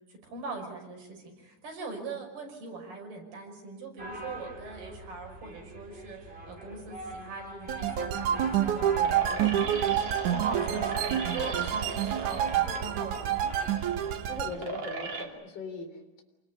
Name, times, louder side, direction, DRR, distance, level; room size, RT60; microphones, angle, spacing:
voice 1, 0.1-9.8 10.2-13.6, right 4 dB, 80° right, 1 dB, 7.8 m, -41 dB
sound 1, 4.0-13.7, equal, 15° right, 5.0 m, -43 dB
sound 2, 7.7-15.2, right 4 dB, 40° right, 3.6 m, -39 dB
sound 3, 7.7-14.5, right 10 dB, 65° right, 2.4 m, -28 dB
voice 2, 14.3-16.2, left 3 dB, 30° left, 4 dB, 4.0 m, -40 dB
28.0 x 21.0 x 9.7 m, 1.0 s
omnidirectional pair, 4.4 m